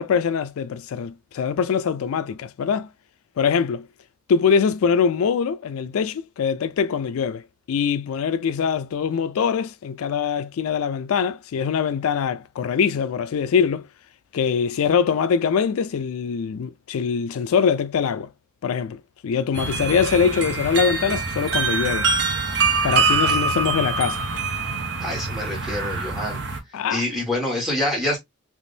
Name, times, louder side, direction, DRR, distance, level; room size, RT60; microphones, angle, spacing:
voice 1, 0.0-2.9 3.4-3.9 4.3-7.4 7.7-13.9 14.3-18.3 18.6-22.1 22.8-24.2 26.7-27.0, left 6 dB, 85° left, 0.4 m, -23 dB
sound 1, 19.5-26.6, right 4 dB, 55° right, 0.7 m, -24 dB
voice 2, 25.0-26.4 26.9-28.2, left 1 dB, ahead, 1.5 m, -26 dB
3.5 x 2.8 x 2.6 m
head